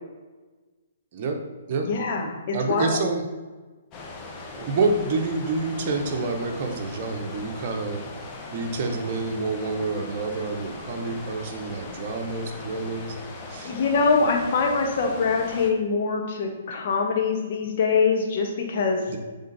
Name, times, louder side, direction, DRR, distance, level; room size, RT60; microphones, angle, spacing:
voice 1, 1.8-3.0 13.6-19.0, left 4 dB, 50° left, 0 dB, 1.5 m, -24 dB
voice 2, 2.5-3.2 4.6-8.1 8.5-13.2 13.5-13.7 19.1-19.2, right 3 dB, 45° right, 3 dB, 1.1 m, -28 dB
sound 1, 3.9-15.7, left 3 dB, 30° left, 1.1 m, -39 dB
7.9 x 3.7 x 4.2 m, 1.3 s
hypercardioid pair, 135°, 0 cm